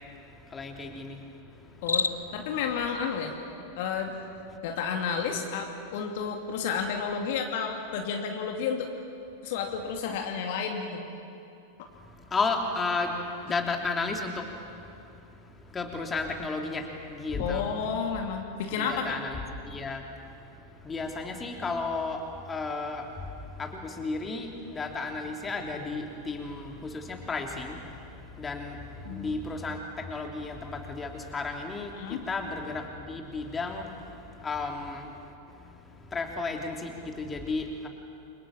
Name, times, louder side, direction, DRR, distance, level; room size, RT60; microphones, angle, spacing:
voice 1, 0.5-1.2 12.3-14.5 15.0-15.1 15.7-17.6 18.8-20.0 20.8-23.3 23.6-35.2 35.6-37.9, left 3 dB, 15° left, 2 dB, 3.1 m, -33 dB
Cricket, 1.7-2.5, left 4 dB, 75° left, 0.8 m, -30 dB
voice 2, 1.8-3.4 3.8-4.2 4.6-8.9 9.4-11.0 17.4-19.2 29.0-29.4 31.9-32.2, left 6 dB, 50° left, 3 dB, 2.5 m, -31 dB
29.5 x 25.0 x 7.5 m, 2.7 s
figure-of-eight pair, 90°, 0 cm